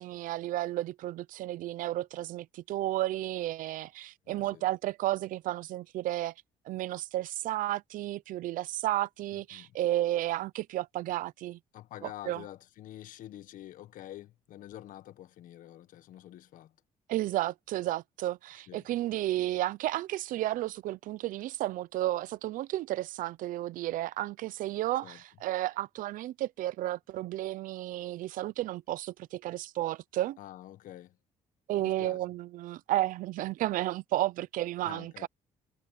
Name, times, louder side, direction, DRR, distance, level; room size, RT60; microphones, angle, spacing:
voice 1, 0.0-6.3 6.7-11.6 12.0-12.4 17.1-30.4 31.7-35.3, right 15 dB, 75° right, 0.8 m, -32 dB
voice 2, 4.3-4.7 9.3-9.8 11.7-16.7 18.7-18.9 25.0-25.2 30.4-31.2 31.8-32.2 34.8-35.3, left 13 dB, 70° left, 1.6 m, -47 dB
supercardioid pair, 65°, 14 cm